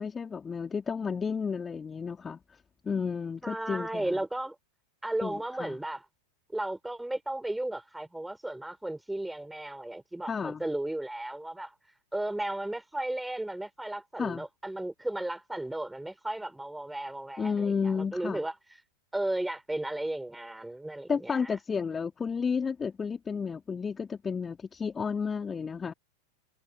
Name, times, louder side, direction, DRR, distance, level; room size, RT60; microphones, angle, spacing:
voice 1, 0.0-2.4 2.8-4.2 5.2-5.8 10.3-10.6 14.2-14.5 17.4-18.4 21.1-25.9, left 6 dB, 15° left, 2.7 m, -32 dB
voice 2, 3.4-4.6 5.0-6.0 6.5-11.7 12.1-18.5 19.1-21.5, right 1 dB, 5° right, 6.0 m, -34 dB
figure-of-eight pair, 90°, 0 cm